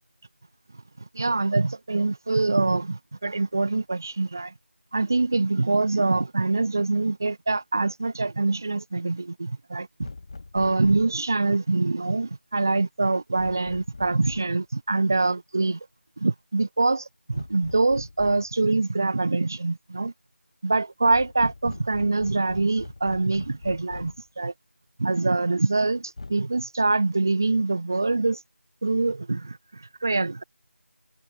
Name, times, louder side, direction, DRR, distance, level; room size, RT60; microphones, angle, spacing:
voice 1, 1.1-4.5 4.9-10.1 10.5-15.8 16.2-20.1 20.6-24.5 25.0-28.4 28.8-30.4, right 3 dB, 15° right, 0.7 m, -24 dB
sound 1, 10.0-11.2 13.4-14.6 17.3-18.6 21.1-24.3 26.2-26.3, left 3 dB, 25° left, 1.9 m, -42 dB
figure-of-eight pair, 180°, 7 cm